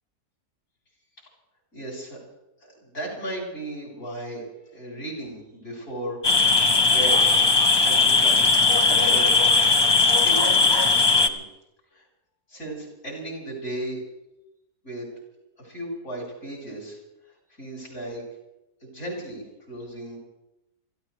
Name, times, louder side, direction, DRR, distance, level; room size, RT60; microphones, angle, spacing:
voice 1, 1.7-2.2 2.8-6.4 6.7-7.4 7.8-9.4 10.1-11.4 11.9-12.0 12.5-14.0 14.8-15.1 15.6-17.0 17.6-18.2 18.8-20.2, right 1 dB, 60° left, -2 dB, 5.9 m, -35 dB
sound 1, 6.2-11.3, left 3 dB, 40° left, 0.3 m, -18 dB
26.5 x 15.0 x 3.2 m, 0.93 s
omnidirectional pair, 1.6 m